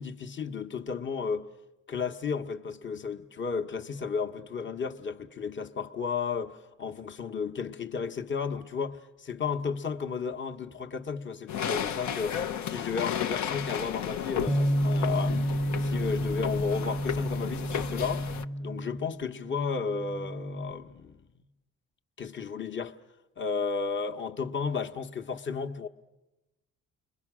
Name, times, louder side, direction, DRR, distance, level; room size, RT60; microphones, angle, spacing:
voice 1, 0.0-1.5 1.9-15.4 15.8-18.3 18.6-21.2 22.2-22.9 23.4-25.9, left 5 dB, 40° left, 1.1 m, -33 dB
sound 1, 11.5-18.4, left 8 dB, 65° left, 0.8 m, -34 dB
Bass guitar, 14.5-20.7, equal, 5° right, 0.7 m, -31 dB
29.5 x 22.0 x 6.2 m
cardioid pair, 90°, 30 cm